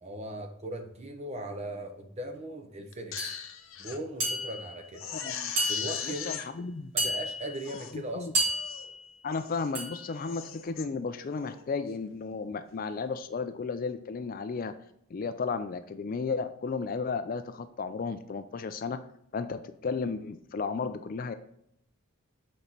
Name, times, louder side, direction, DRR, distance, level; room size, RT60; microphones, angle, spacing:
voice 1, 0.0-3.4 3.8-5.1 5.7-6.3 6.9-8.3, right 1 dB, 30° right, 4 dB, 0.8 m, -39 dB
Crying sobbing, 2.9-4.0 4.4-4.5 4.9-6.5 7.1-7.2 7.5-8.0 8.5-8.9 9.3-9.7 10.1-10.9 11.3-11.6, left 8 dB, 65° left, 0.7 m, -39 dB
sound 1, 3.2-3.4 4.2-4.8 5.6-6.2 7.0-7.6 8.3-9.0 9.7-10.1, right 1 dB, 55° right, 2.1 m, -31 dB
voice 2, 5.1-5.5 6.0-6.9 7.9-8.3 9.2-14.7 15.1-19.0 19.3-21.3, left 4 dB, 40° left, 10 dB, 0.3 m, -34 dB
7.0 x 4.2 x 4.0 m, 0.74 s
head